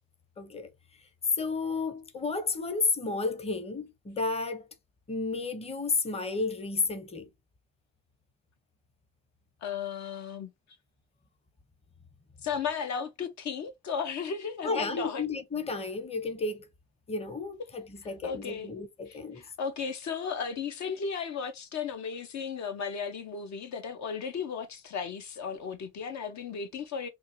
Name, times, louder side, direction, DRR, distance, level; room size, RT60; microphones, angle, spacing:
voice 1, 0.4-0.7 1.4-4.7 5.1-7.3 14.6-16.7 17.1-19.4, left 4 dB, 20° left, 0.7 m, -32 dB
voice 2, 9.6-10.5 12.4-15.2 18.0-18.7 19.1-27.1, left 6 dB, 65° left, 0.8 m, -35 dB
3.5 x 2.3 x 3.0 m
cardioid pair, 90°, 30 cm